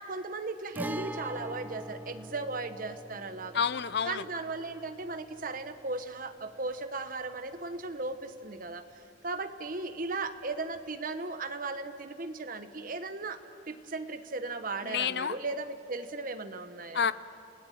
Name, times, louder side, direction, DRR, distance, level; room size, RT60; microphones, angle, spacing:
voice 1, 0.0-3.6 4.0-8.8 9.2-13.4 13.7-17.1, right 3 dB, 50° right, 9 dB, 1.2 m, -36 dB
Guitar, 0.7-8.4 8.6-8.7 10.7-10.9, right 1 dB, 10° right, 0.5 m, -44 dB
voice 2, 3.5-4.2 14.8-15.4 16.9-17.1, left 7 dB, 65° left, 15 dB, 0.6 m, -29 dB
29.5 x 18.0 x 7.7 m, 2.5 s
head